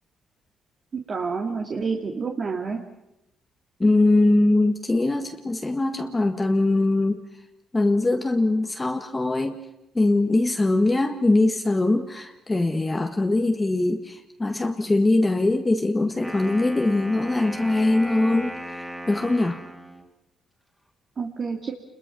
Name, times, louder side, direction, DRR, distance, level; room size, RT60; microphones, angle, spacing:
voice 1, 1.1-2.8 21.2-21.7, right 5 dB, 45° right, 1 dB, 2.5 m, -28 dB
voice 2, 3.8-7.2 7.7-9.6 9.9-19.6, left 2 dB, 20° left, 4 dB, 1.6 m, -22 dB
Wind instrument woodwind instrument, 16.1-20.1, equal, 5° right, 3.2 m, -36 dB
29.0 x 22.0 x 6.1 m, 0.90 s
cardioid pair, 90°, 0 cm